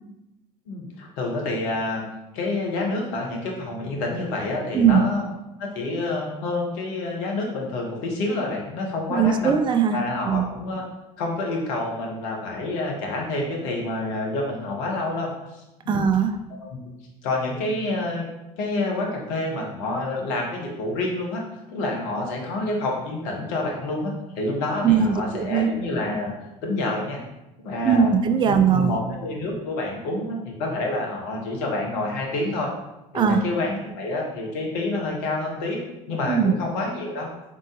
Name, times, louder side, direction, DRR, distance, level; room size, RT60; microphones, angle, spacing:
voice 1, 0.7-2.0 2.3-5.2 5.6-9.5 9.9-10.8 11.2-16.1 16.5-16.8 17.2-18.2 18.6-26.3 26.6-27.2 27.6-28.1 28.4-32.7 33.1-35.8 36.1-37.3, left 2 dB, 65° left, 0 dB, 1.3 m, -28 dB
voice 2, 9.1-10.0 10.2-10.5 15.9-16.4 24.8-25.7 27.8-29.0 33.1-33.4 36.3-36.6, right 7 dB, 25° right, 8 dB, 0.4 m, -20 dB
3.7 x 3.6 x 3.9 m, 0.95 s
hypercardioid pair, 70°, 20 cm